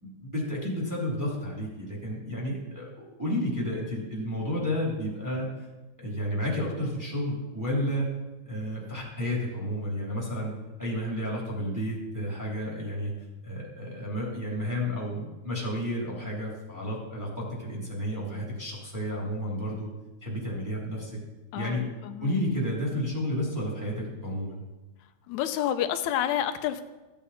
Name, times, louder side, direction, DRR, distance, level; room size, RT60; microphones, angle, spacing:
voice 1, 0.0-5.5 6.0-8.1 8.4-10.5 10.8-13.1 13.4-19.9 20.2-21.2 21.5-21.8 22.2-24.6, equal, 5° right, -4 dB, 2.9 m, -31 dB
voice 2, 21.5-22.4 25.3-26.8, left 10 dB, 85° left, 9 dB, 2.0 m, -29 dB
14.0 x 8.5 x 4.2 m, 1.1 s
omnidirectional pair, 3.3 m